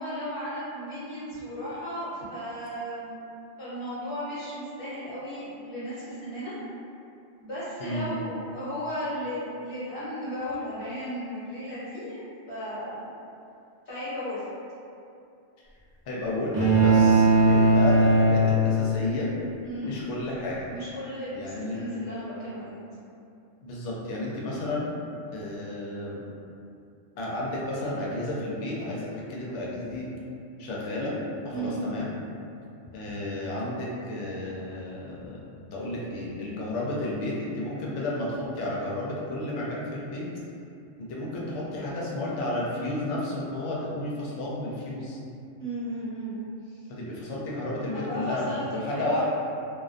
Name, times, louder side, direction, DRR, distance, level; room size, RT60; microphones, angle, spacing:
voice 1, 0.0-3.2 3.6-6.6 7.3-12.2 12.5-13.1 13.9-14.4 19.6-19.9 20.7-22.8 31.5-31.8 45.6-46.8 47.9-49.2, equal, 50° left, -11 dB, 1.0 m, -35 dB
voice 2, 16.1-19.3 19.8-20.7 21.3-21.8 23.6-24.9 25.3-26.2 27.2-30.1 30.6-31.1 31.4-32.1 32.9-40.2 41.0-45.2 46.9-49.3, left 1 dB, 70° left, -5 dB, 0.8 m, -32 dB
sound 1, 16.5-19.1, right 2 dB, 40° right, 0.4 m, -19 dB
2.4 x 2.2 x 2.4 m, 2.6 s
omnidirectional pair, 1.3 m